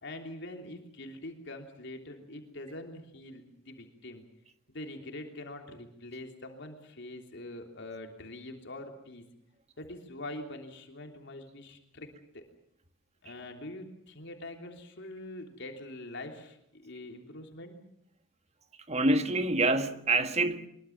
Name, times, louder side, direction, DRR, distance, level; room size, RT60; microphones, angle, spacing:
voice 1, 0.0-4.2 4.7-9.2 9.8-12.1 12.3-12.4 13.2-17.8, left 1 dB, 60° left, 3.3 m, -44 dB
voice 2, 18.9-20.7, right 2 dB, 35° right, 1.5 m, -26 dB
23.5 x 22.5 x 7.3 m
head